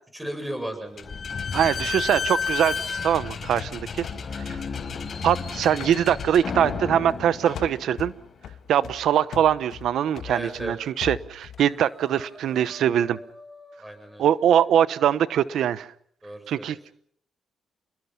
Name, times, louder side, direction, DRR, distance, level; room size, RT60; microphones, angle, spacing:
voice 1, 0.1-1.3 10.3-10.8 13.8-14.3 16.2-16.8, right 1 dB, 5° right, 7 dB, 7.7 m, -35 dB
Slam / Squeak, 1.0-8.2, left 5 dB, 45° left, 4.3 m, -32 dB
voice 2, 1.5-4.0 4.3-4.6 5.2-8.1 8.7-13.2 14.2-15.9 16.5-16.8, right 10 dB, 70° right, 16 dB, 0.9 m, -22 dB
sound 1, 2.2-5.4 5.8-7.3 7.5-11.7, left 10 dB, 70° left, 1.3 m, -41 dB
sound 2, 10.4-10.7 11.0-11.3 11.6-15.6, left 2 dB, 10° left, 5.7 m, -50 dB
29.0 x 21.0 x 5.9 m, 0.66 s
cardioid pair, 90°, 0 cm